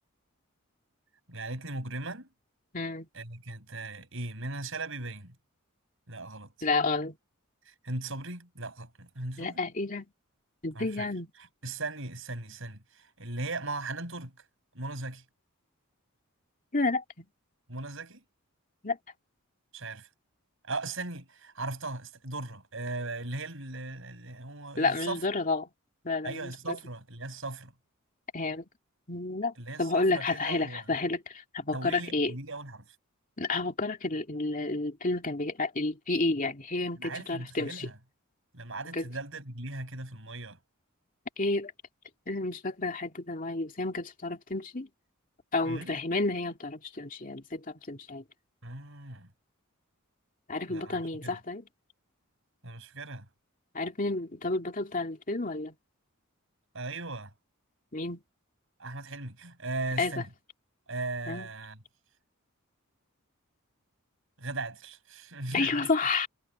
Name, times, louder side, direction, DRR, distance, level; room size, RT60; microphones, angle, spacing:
voice 1, 1.3-2.3 3.1-5.4 6.1-6.7 7.7-9.6 10.7-11.1 11.4-14.3 14.7-15.2 17.7-18.2 19.7-20.1 20.6-25.2 26.2-27.7 29.6-30.9 31.7-33.0 37.0-38.0 38.5-40.6 45.6-45.9 48.6-49.3 50.7-51.4 52.6-53.3 56.7-57.3 58.8-60.3 60.9-61.8 64.4-65.9, right 2 dB, 65° right, 7.0 m, -38 dB
voice 2, 2.7-3.1 6.6-7.2 9.4-10.1 10.6-11.3 16.7-17.3 18.8-19.0 24.8-25.7 26.0-26.7 28.3-28.6 29.1-32.3 33.4-37.9 38.9-39.0 41.4-41.7 42.3-44.9 45.5-48.2 50.5-51.7 53.7-55.7 57.9-58.2 60.0-60.1 61.3-61.5 65.5-66.3, left 3 dB, 40° left, 2.6 m, -30 dB
head